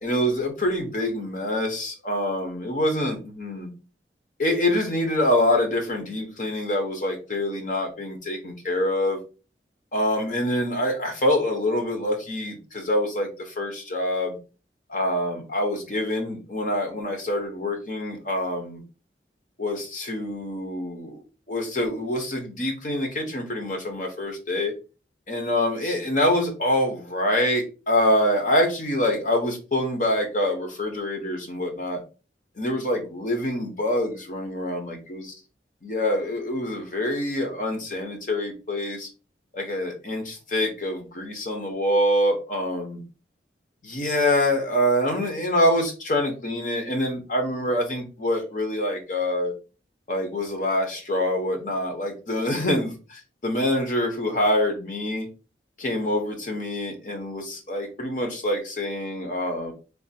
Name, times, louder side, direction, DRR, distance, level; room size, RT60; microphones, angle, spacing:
voice 1, 0.0-3.7 4.4-9.2 9.9-14.4 14.9-18.8 19.6-21.2 21.5-24.7 25.3-32.0 32.6-35.3 35.8-39.1 39.5-43.0 43.8-49.5 50.1-55.3 55.8-59.7, left 1 dB, 45° left, 3 dB, 0.9 m, -25 dB
3.4 x 2.0 x 4.1 m, 0.33 s
head